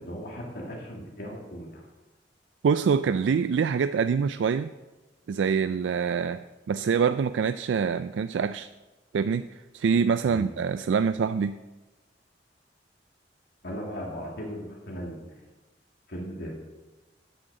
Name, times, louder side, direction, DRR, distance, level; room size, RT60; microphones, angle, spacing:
voice 1, 0.0-1.8 10.2-10.4 13.6-15.4 16.1-16.6, equal, 65° left, -2 dB, 2.4 m, -37 dB
voice 2, 2.6-4.7 5.3-8.7 9.1-11.6, right 6 dB, 85° right, 12 dB, 0.3 m, -25 dB
11.5 x 6.3 x 7.9 m, 1.2 s
head